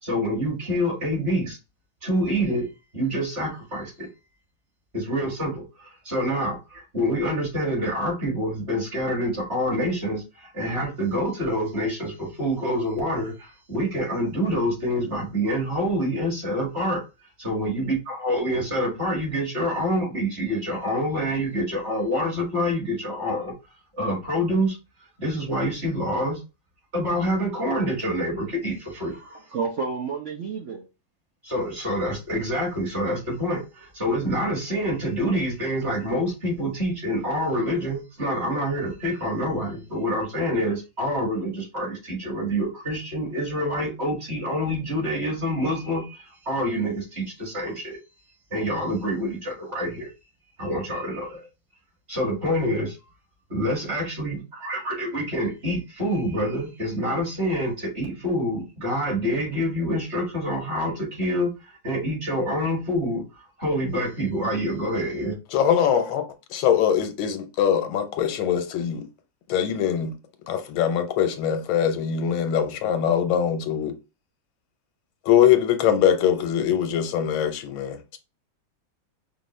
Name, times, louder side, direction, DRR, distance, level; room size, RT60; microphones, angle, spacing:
voice 1, 0.0-1.6 2.0-2.7 2.9-4.1 4.9-17.0 17.4-23.5 24.0-24.8 25.2-26.4 26.9-29.1 31.4-48.0 48.5-50.1 50.6-51.4 52.1-53.0 53.5-65.4, equal, 30° right, 2.0 m, -26 dB
voice 2, 29.1-30.9, right 5 dB, 60° right, 0.7 m, -31 dB
voice 3, 65.5-66.2 66.5-69.0 69.5-70.1 70.5-73.9 75.3-78.0, left 9 dB, 90° left, 1.5 m, -22 dB
5.3 x 2.5 x 3.1 m
omnidirectional pair, 2.2 m